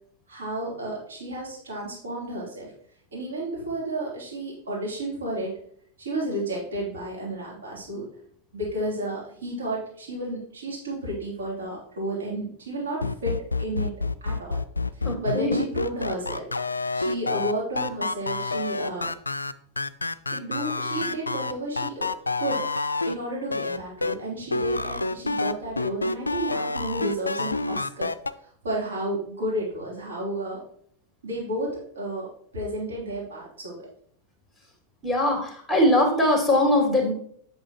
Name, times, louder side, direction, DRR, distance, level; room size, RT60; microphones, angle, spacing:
voice 1, 0.3-2.7 3.1-5.5 6.0-8.1 8.5-13.9 14.2-14.6 15.0-16.4 16.9-19.1 20.3-22.1 22.4-22.6 23.0-28.1 28.4-30.6 31.2-32.3 32.5-33.9, right 1 dB, 65° right, -4 dB, 3.0 m, -32 dB
sound 1, 13.0-23.1 23.5-24.1 24.5-28.3, left 3 dB, 80° left, 0.3 m, -28 dB
voice 2, 15.0-15.6 35.0-37.1, left 1 dB, 5° right, 1 dB, 2.3 m, -21 dB
8.4 x 6.5 x 3.0 m, 0.63 s
figure-of-eight pair, 90°, 0 cm